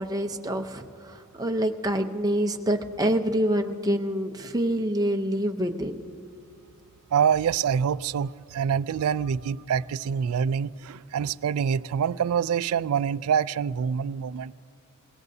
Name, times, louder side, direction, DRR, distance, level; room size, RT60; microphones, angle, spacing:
voice 1, 0.0-6.0, right 1 dB, 15° right, 0.7 m, -26 dB
voice 2, 7.1-14.5, right 7 dB, 80° right, 0.3 m, -26 dB
27.5 x 18.0 x 2.7 m
head